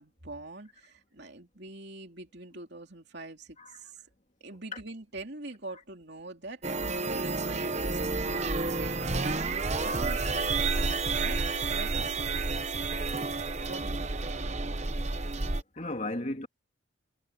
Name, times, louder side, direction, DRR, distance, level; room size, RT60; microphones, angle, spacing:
voice 1, 0.0-4.0 4.4-6.6 7.1-9.4 9.8-11.4 11.7-12.8 13.2-14.7, right 2 dB, 55° right, 3.2 m, -44 dB
sound 1, 6.6-15.6, right 3 dB, 35° right, 1.0 m, -30 dB
voice 2, 15.7-16.5, left 2 dB, 35° left, 2.7 m, -36 dB
head